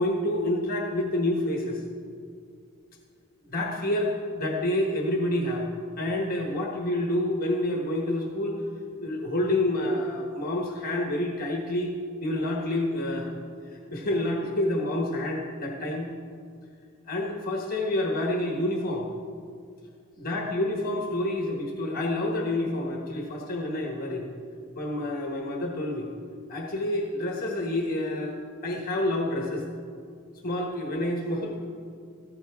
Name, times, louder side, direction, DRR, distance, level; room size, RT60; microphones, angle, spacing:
voice 1, 0.0-1.8 3.5-5.7 6.0-8.6 9.0-11.9 12.2-13.3 13.9-16.1 17.1-19.1 20.2-24.3 24.8-26.1 26.5-28.4 28.6-29.7 30.4-31.6, left 1 dB, 40° left, 1 dB, 1.3 m, -28 dB
14.5 x 14.5 x 3.6 m, 2.2 s
head